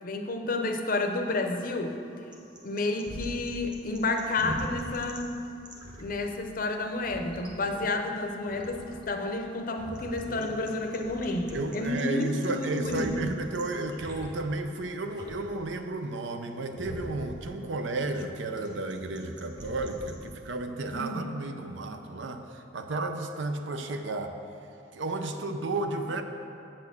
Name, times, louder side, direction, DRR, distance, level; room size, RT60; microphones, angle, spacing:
voice 1, 0.0-2.0 2.6-5.4 6.0-13.3 20.9-21.2, left 2 dB, 45° left, 4 dB, 0.6 m, -30 dB
sound 1, 1.2-20.3, equal, 25° right, 1.0 m, -44 dB
voice 2, 11.5-24.3 24.9-26.2, right 2 dB, 80° right, 6 dB, 0.6 m, -33 dB
7.7 x 4.3 x 7.0 m, 2.6 s
head